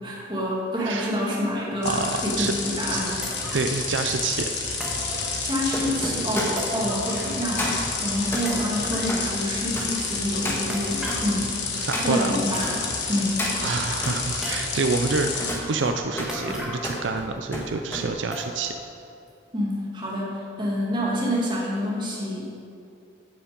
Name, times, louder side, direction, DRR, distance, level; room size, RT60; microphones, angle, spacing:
voice 1, 0.0-3.2 5.4-7.7 7.9-11.6 12.0-12.8 13.1-13.4 19.5-22.4, equal, 25° right, -5 dB, 2.5 m, -27 dB
voice 2, 0.8-1.1 1.8-2.5 2.9-3.1 3.5-4.5 11.8-12.4 13.6-15.3 15.7-18.7, right 4 dB, 75° right, 6 dB, 0.5 m, -27 dB
sound 1, 1.8-15.5, left 4 dB, 60° left, 1.7 m, -30 dB
sound 2, 2.4-2.5 3.2-3.8 4.8-5.7 6.6-7.5 7.8-7.9 8.5-9.2 10.7-11.3 12.1-12.2 12.5-13.1 13.4-13.5 14.4-15.0 16.3-17.1 17.4-17.5 18.3-18.8 19.3-19.4 20.0-20.1, equal, 5° right, 1.7 m, -37 dB
sound 3, 2.5-12.8 13.1-14.2 14.7-18.1 18.4-18.7, equal, 10° left, 1.6 m, -34 dB
15.0 x 7.1 x 5.2 m, 2.5 s
head